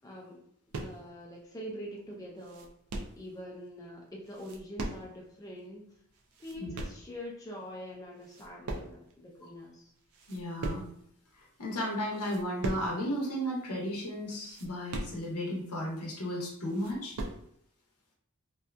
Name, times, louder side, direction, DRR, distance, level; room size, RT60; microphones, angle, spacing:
voice 1, 0.0-0.4 0.8-2.7 3.2-5.8 6.4-9.9, equal, 15° left, -3 dB, 0.4 m, -44 dB
sound 1, 0.7-1.2 1.7-1.8 2.1-3.3 4.2-5.3 5.6-5.7 6.1-7.1 7.7-7.9 8.2-9.2 9.5-9.6 10.0-11.1 11.6-11.7 12.1-13.0 13.3-13.4 13.7-13.8 14.3-15.6 16.1-16.2 16.5-17.5, right 2 dB, 75° right, 0.4 m, -40 dB
voice 2, 10.3-10.9 11.6-17.2, equal, 90° left, -2 dB, 0.8 m, -34 dB
2.7 x 2.3 x 2.2 m, 0.68 s
head